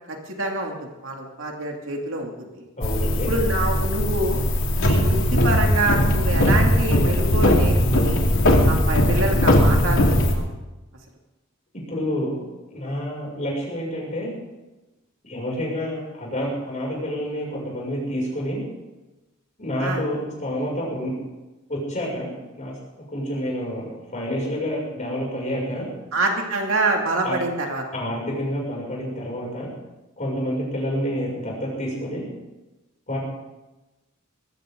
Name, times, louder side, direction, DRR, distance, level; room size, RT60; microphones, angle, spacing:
voice 1, 0.1-2.6 3.3-4.4 4.8-8.2 8.7-10.5 19.8-20.0 26.1-27.8, right 2 dB, 65° right, 1 dB, 2.7 m, -26 dB
sound 1, 2.8-10.3, left 1 dB, 65° left, 2.6 m, -19 dB
voice 2, 2.8-3.3 11.9-12.4 12.7-14.3 15.2-18.6 19.6-21.1 21.7-22.7 23.1-25.9 27.2-27.4 27.9-29.7 30.2-32.2 33.1-33.2, equal, 35° left, -3 dB, 6.8 m, -28 dB
21.0 x 15.5 x 3.9 m, 1.1 s
head